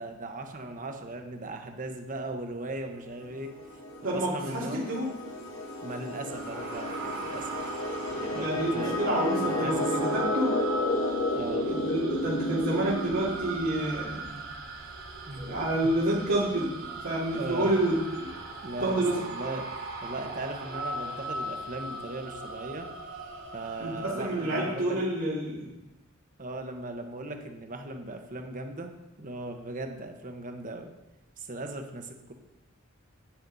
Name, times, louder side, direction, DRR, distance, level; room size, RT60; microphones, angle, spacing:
voice 1, 0.0-4.9 5.8-7.5 8.2-8.5 8.7-9.0 9.4-9.9 11.3-11.7 15.3-15.5 16.5-17.0 17.3-17.7 18.6-22.9 23.5-25.0 26.4-28.9 29.2-30.9 31.4-32.3, right 2 dB, 40° right, 5 dB, 1.1 m, -38 dB
sound 1, 3.4-13.9, left 1 dB, 90° left, 2.3 m, -32 dB
voice 2, 4.0-5.1 8.3-9.7 10.1-10.5 11.6-14.4 15.4-16.7 17.0-18.4 18.8-19.2 23.8-25.6, right 1 dB, 90° right, -9 dB, 2.6 m, -28 dB
sound 2, 6.3-24.7, right 2 dB, 65° right, 3.0 m, -39 dB
10.5 x 9.2 x 4.1 m, 0.97 s
head